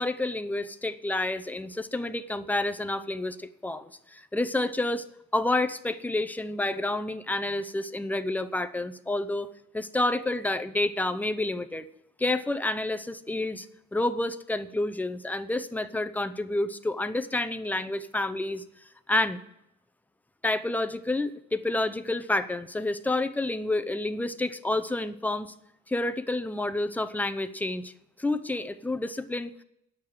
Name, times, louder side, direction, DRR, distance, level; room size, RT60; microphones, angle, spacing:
voice 1, 0.0-5.1 5.3-9.5 9.7-11.8 12.2-13.7 13.9-18.6 19.1-19.4 20.4-25.5 25.9-27.9 28.2-29.5, left 2 dB, 5° left, 11 dB, 0.6 m, -29 dB
9.2 x 6.6 x 8.7 m, 0.81 s
cardioid pair, 90°, 30 cm